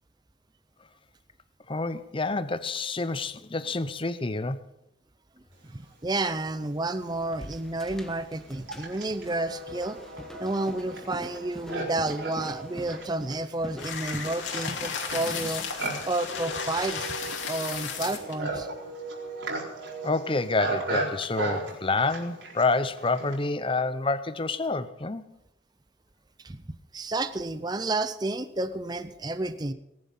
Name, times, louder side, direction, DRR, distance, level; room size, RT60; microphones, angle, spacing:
voice 1, 1.7-4.6 20.0-25.2, left 3 dB, 25° left, 0.7 m, -28 dB
voice 2, 5.6-10.0 10.4-15.7 16.0-17.2 17.5-18.7 26.4-29.7, right 2 dB, 20° right, 0.6 m, -31 dB
Livestock farm animals working animals, 6.7-6.8 7.5-23.5, right 2 dB, 70° right, 4.3 m, -36 dB
sound 1, 7.1-18.0, equal, ahead, 1.1 m, -45 dB
sound 2, 13.8-18.4, left 6 dB, 70° left, 2.7 m, -34 dB
19.0 x 11.0 x 5.5 m
head